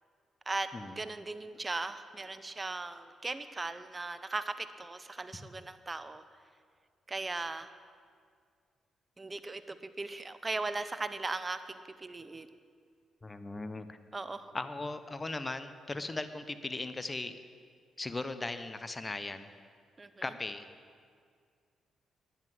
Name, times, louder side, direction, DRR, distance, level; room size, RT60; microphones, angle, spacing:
voice 1, 1.0-6.2 7.1-7.7 9.2-12.5 14.1-14.5 20.0-20.3, right 3 dB, 30° right, 12 dB, 0.9 m, -38 dB
voice 2, 13.2-14.0 14.5-17.3 18.0-19.5 20.2-20.7, left 2 dB, 30° left, 11 dB, 0.9 m, -38 dB
11.0 x 10.0 x 7.8 m, 2.1 s
supercardioid pair, 50°, 0 cm